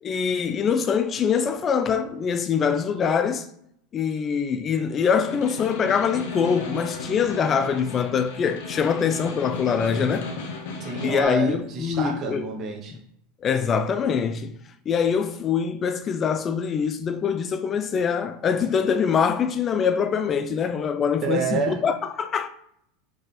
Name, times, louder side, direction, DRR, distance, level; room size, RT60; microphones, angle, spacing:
voice 1, 0.0-3.5 3.9-10.3 11.0-12.4 13.4-14.5 14.9-22.5, left 6 dB, 30° left, 0.3 m, -24 dB
Snare drum, 5.1-11.2, left 4 dB, 75° left, 0.8 m, -35 dB
voice 2, 10.8-13.0 21.2-21.8, right 4 dB, 35° right, 0.9 m, -28 dB
3.5 x 2.4 x 4.2 m
supercardioid pair, 115°, 0 cm